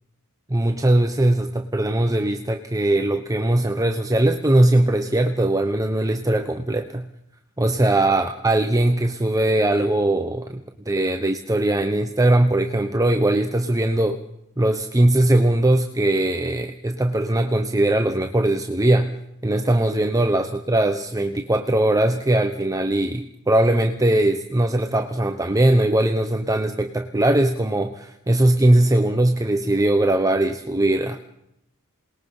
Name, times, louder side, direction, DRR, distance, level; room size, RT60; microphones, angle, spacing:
voice 1, 0.5-7.1 7.6-14.2 14.6-19.1 19.4-31.2, right 1 dB, 15° right, 5 dB, 1.0 m, -20 dB
27.5 x 20.5 x 5.6 m, 0.80 s
head